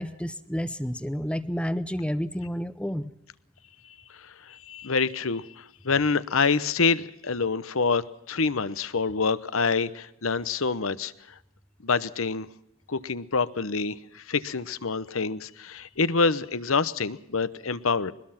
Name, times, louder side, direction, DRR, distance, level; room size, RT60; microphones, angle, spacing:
voice 1, 0.0-3.1, equal, 5° left, 13 dB, 0.7 m, -30 dB
voice 2, 4.2-11.1 11.8-12.5 12.9-18.1, left 4 dB, 75° left, 15 dB, 1.0 m, -26 dB
22.5 x 21.0 x 5.9 m, 0.80 s
head